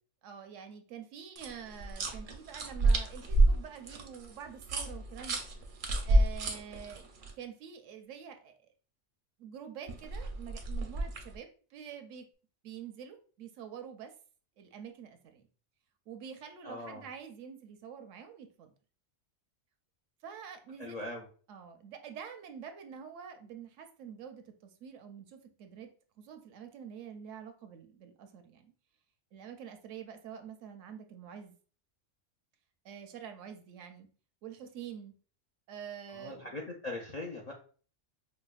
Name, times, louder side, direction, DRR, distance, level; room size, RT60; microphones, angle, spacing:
voice 1, 0.2-5.4 6.0-7.1 7.4-8.7 9.4-12.3 12.6-14.1 14.6-15.5 16.1-18.7 20.2-21.0 21.5-25.9 26.2-28.7 29.3-31.6 32.8-34.1 34.4-35.1 35.7-36.5, right 8 dB, 75° right, 7 dB, 0.9 m, -47 dB
sound 1, 1.4-7.3 9.9-11.4, right 2 dB, 55° right, 0.6 m, -29 dB
voice 2, 16.6-17.0 20.8-21.3 36.1-37.5, left 2 dB, 55° left, -2 dB, 0.4 m, -40 dB
4.8 x 2.2 x 2.3 m, 0.40 s
omnidirectional pair, 1.3 m